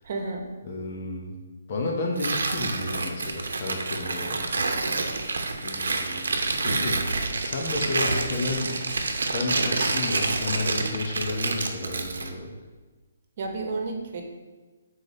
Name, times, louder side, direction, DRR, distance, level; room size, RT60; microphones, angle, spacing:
voice 1, 0.0-0.5 13.4-14.2, right 3 dB, 45° right, 3 dB, 1.1 m, -31 dB
voice 2, 0.6-1.4 1.7-4.4 5.6-6.2 6.6-8.8 9.3-12.5, left 2 dB, 40° left, 0 dB, 1.0 m, -31 dB
Tearing, 2.1-12.3, right 3 dB, 80° right, 0.8 m, -28 dB
4.7 x 4.1 x 5.2 m, 1.3 s
hypercardioid pair, 155°, 0 cm